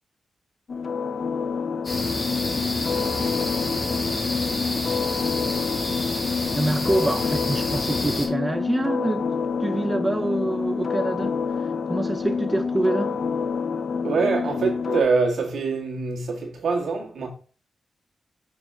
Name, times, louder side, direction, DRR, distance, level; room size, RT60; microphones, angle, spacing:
sound 1, 0.7-15.0, left 5 dB, 60° left, 0.5 m, -27 dB
sound 2, 1.8-8.3, left 2 dB, 40° left, 2.2 m, -29 dB
voice 1, 6.6-9.3 9.6-11.4 11.9-13.2, right 2 dB, 20° right, 0.5 m, -25 dB
voice 2, 14.0-17.3, right 4 dB, 85° right, 1.7 m, -24 dB
6.0 x 4.9 x 3.6 m
cardioid pair, 85°, 0 cm